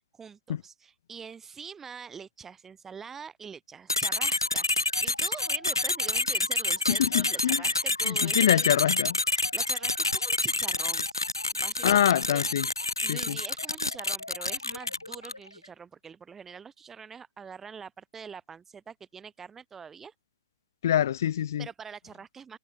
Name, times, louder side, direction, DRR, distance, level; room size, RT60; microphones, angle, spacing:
voice 1, 0.0-8.6 9.3-12.4 13.0-20.1 21.6-22.6, right 6 dB, 15° right, 6.9 m, -45 dB
sound 1, 3.9-15.5, left 2 dB, 90° left, 0.5 m, -28 dB
voice 2, 6.9-7.6 8.0-9.2 11.8-12.7 13.1-13.4 20.8-21.7, left 10 dB, 55° left, 0.8 m, -25 dB
figure-of-eight pair, 115°, 2 cm